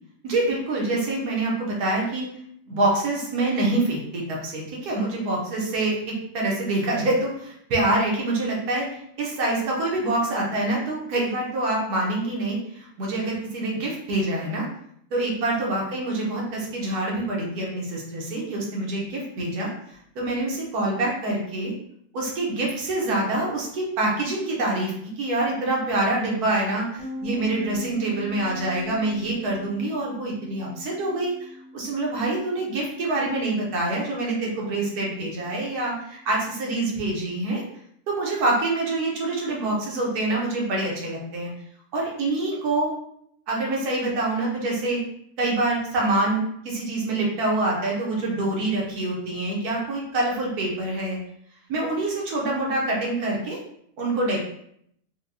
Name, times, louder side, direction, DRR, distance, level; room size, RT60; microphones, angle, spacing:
voice 1, 0.2-2.3 2.7-8.9 9.2-14.7 15.1-19.7 20.1-21.7 22.1-31.5 31.7-37.6 38.1-41.5 41.9-42.9 43.5-45.0 45.4-51.2 51.7-53.6 54.0-54.4, right 2 dB, 80° right, -2 dB, 1.4 m, -26 dB
sound 1, 27.0-36.4, equal, 75° left, 1.4 m, -42 dB
4.6 x 2.2 x 2.6 m, 0.70 s
omnidirectional pair, 1.6 m